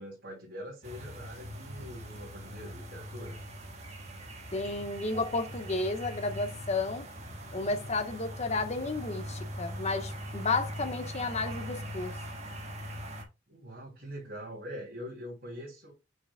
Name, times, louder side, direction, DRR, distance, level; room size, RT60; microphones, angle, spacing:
voice 1, 0.0-3.4 13.5-15.9, equal, 55° right, 2.8 m, -43 dB
sound 1, 0.8-13.2, equal, 35° right, 1.6 m, -41 dB
voice 2, 4.5-7.0 7.5-12.1, left 3 dB, 35° left, 1.1 m, -32 dB
7.2 x 6.0 x 2.2 m
head